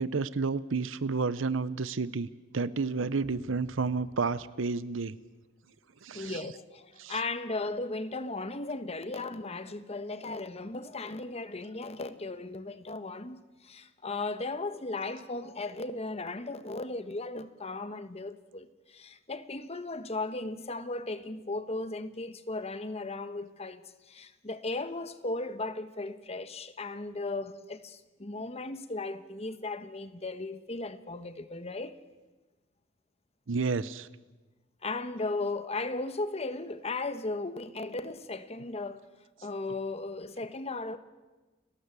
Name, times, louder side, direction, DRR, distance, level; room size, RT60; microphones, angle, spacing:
voice 1, 0.0-2.3 2.5-5.2 6.0-6.4 7.0-7.2 33.5-34.1, right 4 dB, 80° right, 0.7 m, -31 dB
sound 1, 3.2-5.3, equal, 90° left, 3.8 m, -57 dB
voice 2, 6.1-32.0 34.8-39.0 39.4-41.0, left 2 dB, 35° left, 1.1 m, -36 dB
30.0 x 12.5 x 8.3 m
head